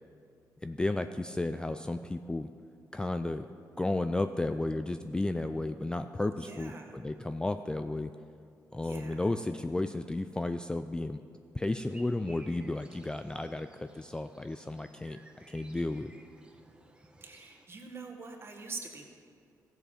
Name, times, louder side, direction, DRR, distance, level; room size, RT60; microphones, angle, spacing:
voice 1, 0.6-2.5 2.9-3.5 3.8-8.1 8.7-11.2 11.5-15.2 15.5-16.1, left 2 dB, 10° left, 9 dB, 0.3 m, -33 dB
voice 2, 6.4-7.0 8.8-9.3 17.2-19.1, right 4 dB, 35° right, 2 dB, 1.6 m, -44 dB
sound 1, 11.9-17.7, right 2 dB, 15° right, 1.0 m, -58 dB
14.0 x 7.6 x 5.0 m, 2.3 s
cardioid pair, 90°, 7 cm